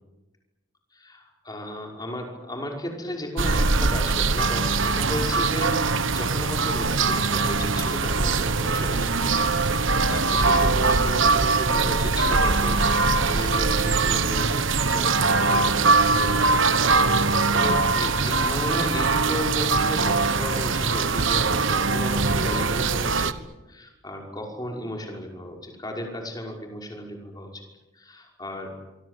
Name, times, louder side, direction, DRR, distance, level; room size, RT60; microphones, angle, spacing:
voice 1, 0.9-9.5 9.8-15.1 15.4-23.3 23.7-27.6 27.9-28.7, left 1 dB, 20° left, 1 dB, 5.6 m, -35 dB
sound 1, 3.4-23.3, right 3 dB, 65° right, 1.3 m, -22 dB
sound 2, 8.5-15.0, left 1 dB, 40° left, 3.1 m, -41 dB
25.5 x 25.0 x 8.4 m, 1.0 s
head